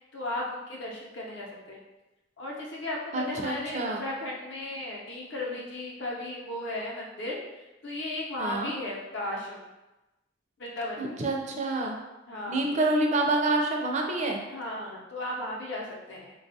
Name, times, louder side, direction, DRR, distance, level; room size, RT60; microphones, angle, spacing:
voice 1, 0.1-1.8 2.4-9.7 10.6-11.2 12.3-12.7 14.5-16.3, left 1 dB, 65° left, -3 dB, 0.7 m, -35 dB
voice 2, 3.1-4.0 8.4-8.7 11.0-12.0 12.5-14.4, right 2 dB, 40° right, 1 dB, 0.4 m, -27 dB
3.4 x 2.3 x 2.6 m, 1.0 s
head